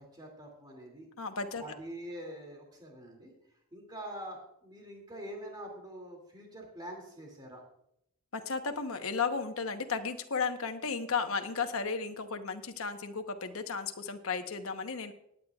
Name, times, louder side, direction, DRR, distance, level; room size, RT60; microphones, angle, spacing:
voice 1, 0.0-1.1 1.6-3.3 3.7-7.6, right 1 dB, 20° right, 0 dB, 2.5 m, -45 dB
voice 2, 1.2-1.6 8.3-15.1, left 5 dB, 85° left, 6 dB, 1.0 m, -34 dB
20.5 x 9.3 x 2.4 m, 0.77 s
head